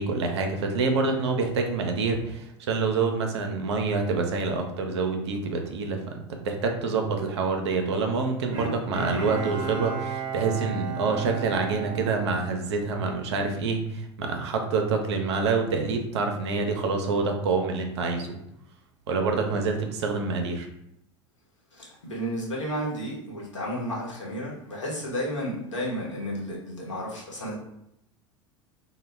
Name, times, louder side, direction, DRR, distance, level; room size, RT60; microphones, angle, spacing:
voice 1, 0.0-6.0 6.4-18.4 19.1-20.7, right 4 dB, 65° right, 4 dB, 0.5 m, -27 dB
Bowed string instrument, 8.5-13.0 13.5-13.6, right 4 dB, 35° right, 0.8 m, -34 dB
voice 2, 21.7-27.5, equal, 75° left, -5 dB, 0.9 m, -32 dB
2.1 x 2.0 x 3.1 m, 0.80 s
figure-of-eight pair, 80°, 16 cm